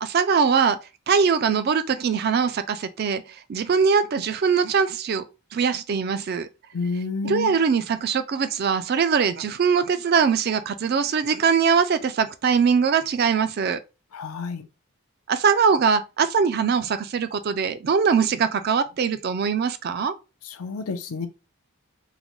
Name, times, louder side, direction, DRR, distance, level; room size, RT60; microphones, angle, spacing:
voice 1, 0.0-0.8 1.1-3.2 3.5-5.2 5.5-6.5 7.2-13.8 15.3-20.1, right 6 dB, 45° right, 0.3 m, -22 dB
voice 2, 6.7-7.6 14.1-14.6 20.4-21.3, left 4 dB, 80° left, 0.5 m, -30 dB
3.8 x 2.1 x 3.0 m
head